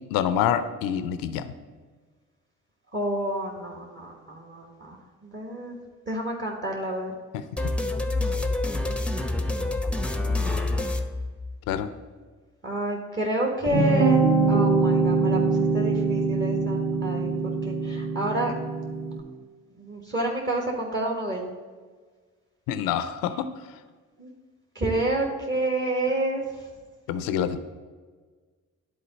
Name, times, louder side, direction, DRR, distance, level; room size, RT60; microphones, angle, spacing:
voice 1, 0.1-1.5 7.3-7.7 11.7-11.9 22.7-23.5 27.1-27.6, left 9 dB, 80° left, 12 dB, 0.5 m, -27 dB
voice 2, 2.9-5.0 5.2-5.8 6.1-7.1 12.6-14.2 14.5-15.4 15.7-17.3 17.7-18.5 19.8-21.5 24.2-24.3 24.7-26.4, right 1 dB, 30° right, -1 dB, 1.4 m, -28 dB
sound 1, 7.6-11.9, left 2 dB, 5° left, 0.7 m, -27 dB
sound 2, 13.7-19.2, right 3 dB, 55° right, 2.3 m, -23 dB
10.0 x 4.0 x 4.0 m, 1.5 s
hypercardioid pair, 45°, 35 cm